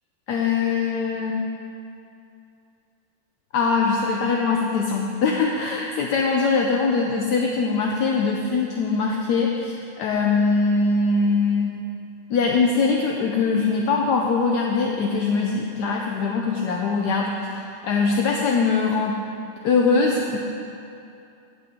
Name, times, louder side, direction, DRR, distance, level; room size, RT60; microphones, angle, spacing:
voice 1, 0.3-1.4 3.5-11.8 12.3-19.2 19.6-20.4, left 4 dB, 70° left, 0 dB, 1.0 m, -22 dB
16.0 x 5.7 x 3.6 m, 2.6 s
omnidirectional pair, 2.3 m